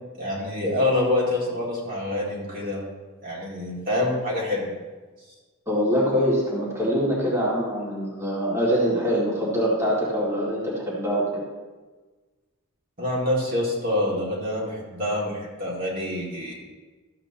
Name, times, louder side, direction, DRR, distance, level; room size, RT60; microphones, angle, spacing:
voice 1, 0.2-2.8 3.2-4.7 13.0-16.5, left 1 dB, 40° right, -5 dB, 2.4 m, -26 dB
voice 2, 5.7-11.4, equal, 15° right, -7 dB, 2.2 m, -24 dB
13.5 x 7.9 x 2.9 m, 1.3 s
head